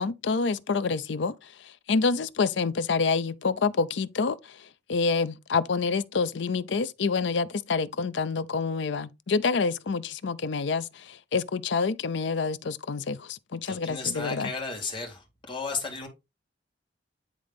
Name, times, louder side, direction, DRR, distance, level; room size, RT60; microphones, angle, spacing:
voice 1, 0.0-1.3 1.6-14.5, left 4 dB, 70° left, 0.5 m, -27 dB
voice 2, 13.6-16.1, left 4 dB, 25° left, 2.4 m, -34 dB
9.6 x 3.8 x 3.5 m
head